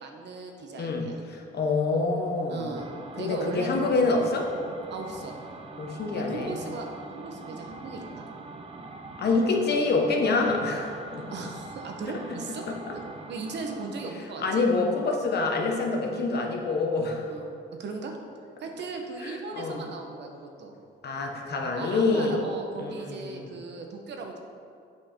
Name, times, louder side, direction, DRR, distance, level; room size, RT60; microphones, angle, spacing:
voice 1, 0.0-1.2 2.5-4.3 4.9-5.4 6.1-8.3 11.3-12.7 12.9-13.0 13.3-14.6 16.1-16.3 17.3-17.5 17.8-18.2 18.6-20.7 21.8-24.4, right 3 dB, 60° right, 2 dB, 1.1 m, -38 dB
voice 2, 0.8-2.7 3.1-4.5 5.8-6.6 9.2-11.3 12.7-12.9 14.4-17.3 19.2-19.8 21.0-22.5 22.8-23.5, left 3 dB, 55° left, 1 dB, 1.2 m, -26 dB
sound 1, 2.7-14.2, right 3 dB, 30° right, 0.8 m, -43 dB
7.8 x 5.6 x 4.4 m, 2.4 s
cardioid pair, 90°, 20 cm